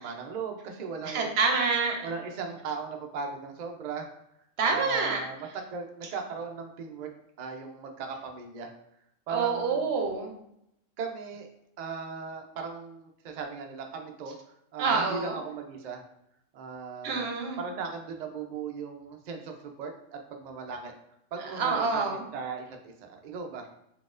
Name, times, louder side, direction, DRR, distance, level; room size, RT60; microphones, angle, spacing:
voice 1, 0.0-1.3 2.0-4.1 4.7-7.1 7.4-8.7 9.3-9.9 11.0-11.5 11.8-14.3 14.7-16.0 16.5-17.3 17.6-20.9 21.3-22.1 22.3-23.6, right 5 dB, 80° right, 3 dB, 0.3 m, -37 dB
voice 2, 1.1-2.0 4.6-5.2 9.3-10.4 14.8-15.4 17.0-17.6 21.4-22.2, right 4 dB, 60° right, 2 dB, 0.8 m, -27 dB
4.1 x 2.8 x 2.4 m, 0.78 s
omnidirectional pair, 1.3 m